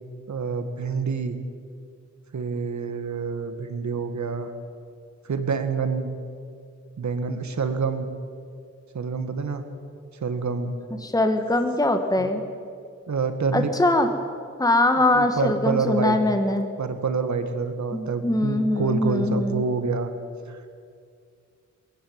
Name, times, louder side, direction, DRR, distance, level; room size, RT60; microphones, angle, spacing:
voice 1, 0.3-1.4 2.3-4.5 5.2-6.1 7.0-8.1 8.9-9.6 10.1-10.7 12.2-12.3 13.1-13.7 15.1-16.2 16.8-20.1 20.5-20.6, right 5 dB, 70° right, 8 dB, 1.8 m, -27 dB
voice 2, 11.0-12.4 13.5-14.1 14.6-16.7 17.9-19.6, left 1 dB, 10° left, 6 dB, 1.5 m, -22 dB
22.0 x 15.0 x 9.5 m, 2.3 s
wide cardioid pair, 130°, 30 cm